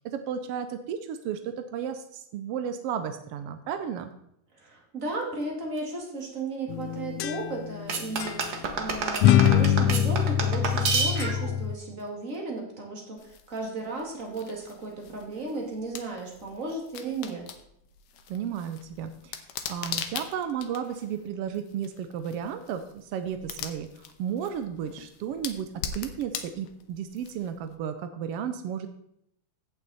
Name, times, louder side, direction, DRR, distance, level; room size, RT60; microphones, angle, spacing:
voice 1, 0.0-4.1 18.3-28.9, right 8 dB, 80° right, 8 dB, 1.4 m, -33 dB
voice 2, 4.5-13.2 13.5-17.4, right 3 dB, 30° right, 0 dB, 2.1 m, -35 dB
sound 1, 6.7-7.9 8.2-8.4 9.2-11.8, left 10 dB, 90° left, 1.4 m, -23 dB
sound 2, 7.9-11.5, right 4 dB, 60° right, 1.0 m, -29 dB
sound 3, 13.2-27.7, left 8 dB, 70° left, 1.5 m, -42 dB
15.5 x 5.8 x 4.2 m, 0.76 s
omnidirectional pair, 3.5 m